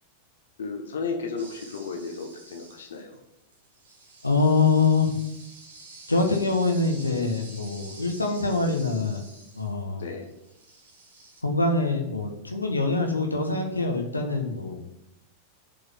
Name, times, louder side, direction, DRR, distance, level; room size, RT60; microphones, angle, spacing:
voice 1, 0.6-3.2 10.0-10.3, left 4 dB, 65° left, 3 dB, 1.2 m, -34 dB
sound 1, 1.4-3.1 3.5-9.9 10.2-11.4, right 3 dB, 60° right, 2.0 m, -49 dB
voice 2, 4.2-5.2 6.1-9.3 9.5-10.0 11.4-14.8, left 3 dB, 85° left, 2 dB, 1.3 m, -24 dB
7.5 x 5.5 x 7.3 m, 0.86 s
figure-of-eight pair, 90°, 0 cm